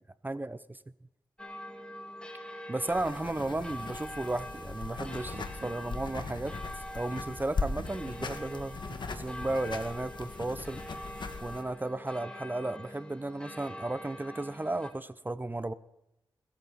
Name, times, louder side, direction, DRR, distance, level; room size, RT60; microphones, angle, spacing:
voice 1, 0.2-0.8 2.7-6.5 6.9-8.8 9.1-10.8 11.4-15.7, right 2 dB, 20° right, 16 dB, 0.7 m, -34 dB
sound 1, 1.4-14.9, equal, 10° left, 2.3 m, -44 dB
sound 2, 2.9-11.6, left 4 dB, 60° left, 1.8 m, -39 dB
Door, 4.8-6.0, right 2 dB, 55° right, 6.9 m, -52 dB
21.5 x 13.5 x 4.1 m, 0.83 s
wide cardioid pair, 80°, 9 cm